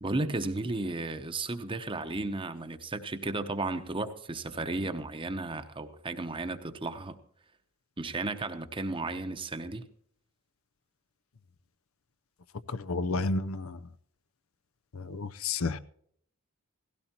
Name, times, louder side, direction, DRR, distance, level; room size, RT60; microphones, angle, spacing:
voice 1, 0.0-7.2 8.0-9.9, right 2 dB, 25° right, 0.9 m, -34 dB
voice 2, 12.7-13.8 14.9-15.8, left 3 dB, 70° left, 0.7 m, -31 dB
17.5 x 16.0 x 2.9 m
head